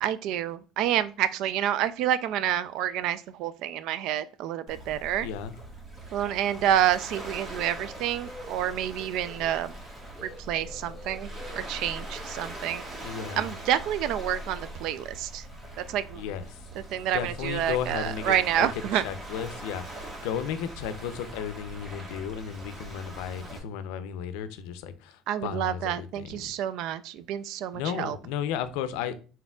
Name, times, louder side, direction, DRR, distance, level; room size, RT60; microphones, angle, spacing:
voice 1, 0.0-5.3 6.1-9.7 10.2-12.8 13.4-15.4 15.8-16.2 16.9-19.0 25.3-28.2, right 11 dB, 70° right, 0.3 m, -28 dB
Waves surf, 4.7-23.6, right 1 dB, 30° right, 1.3 m, -42 dB
voice 2, 5.2-5.5 13.0-13.5 16.1-16.6 17.1-18.7 18.9-26.5 27.7-29.2, left 8 dB, 85° left, 0.4 m, -34 dB
Bird, 6.6-13.1, left 1 dB, 20° left, 1.2 m, -49 dB
4.2 x 3.9 x 2.3 m
supercardioid pair, 100°, 0 cm